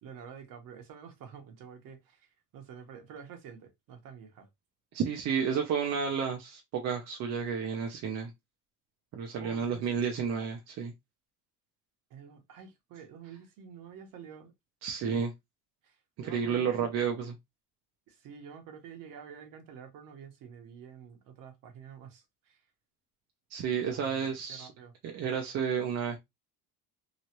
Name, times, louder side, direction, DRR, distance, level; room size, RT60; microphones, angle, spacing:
voice 1, 0.0-4.5 9.4-9.9 12.1-14.5 15.1-15.2 15.8-16.9 18.1-22.6 23.9-24.9, right 7 dB, 60° right, 1.1 m, -48 dB
voice 2, 4.9-8.3 9.1-10.9 14.8-15.3 16.2-17.3 23.5-24.7 25.0-26.2, right 7 dB, 45° right, 0.6 m, -31 dB
3.1 x 2.4 x 2.8 m
cardioid pair, 125°, 37 cm